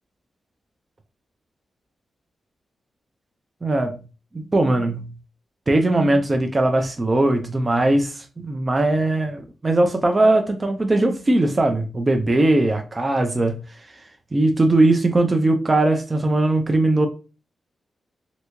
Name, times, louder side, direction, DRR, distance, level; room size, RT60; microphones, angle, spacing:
voice 1, 3.6-4.0 4.3-5.1 5.7-13.6 14.3-17.1, right 2 dB, 25° right, 0.4 m, -19 dB
3.3 x 2.6 x 3.0 m
wide cardioid pair, 135°, 0 cm